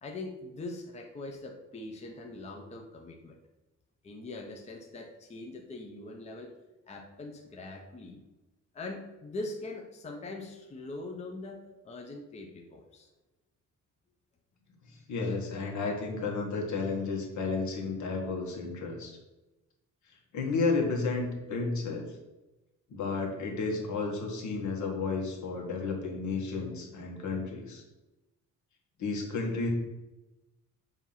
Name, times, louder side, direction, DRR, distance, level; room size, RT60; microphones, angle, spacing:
voice 1, 0.0-3.4 4.0-8.2 8.7-13.1, left 2 dB, 20° left, 2 dB, 0.6 m, -42 dB
voice 2, 14.8-19.2 20.1-22.1 22.9-27.8 29.0-29.7, left 4 dB, 70° left, 0 dB, 1.5 m, -32 dB
7.0 x 2.8 x 5.6 m, 1.0 s
cardioid pair, 160°, 31 cm